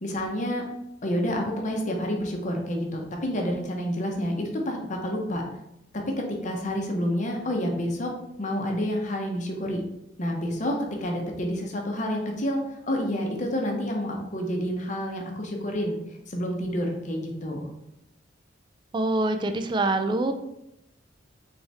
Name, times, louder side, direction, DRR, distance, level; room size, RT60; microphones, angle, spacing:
voice 1, 0.0-0.6 1.0-5.4 5.9-8.1 8.4-9.8 10.2-12.6 12.9-16.0 16.3-17.7, equal, 40° left, 1 dB, 0.8 m, -29 dB
voice 2, 18.9-20.3, right 2 dB, 25° right, 7 dB, 0.3 m, -25 dB
4.1 x 3.4 x 3.4 m, 0.84 s
head